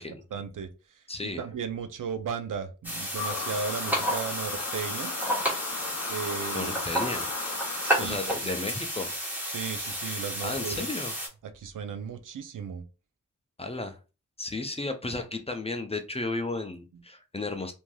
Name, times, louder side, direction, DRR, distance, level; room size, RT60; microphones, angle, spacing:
voice 1, 0.0-5.1 6.1-6.8 7.8-8.5 9.4-10.9 11.4-12.8 16.9-17.0, right 6 dB, 80° right, 9 dB, 0.5 m, -36 dB
voice 2, 1.1-1.4 6.5-7.3 8.0-9.1 10.4-11.1 13.6-14.0 14.4-17.7, left 2 dB, 20° left, 6 dB, 0.4 m, -33 dB
sound 1, 2.8-11.3, equal, 5° right, 1.1 m, -31 dB
sound 2, 3.1-8.3, left 7 dB, 80° left, 0.5 m, -37 dB
3.1 x 2.6 x 2.2 m, 0.32 s
wide cardioid pair, 95°, 31 cm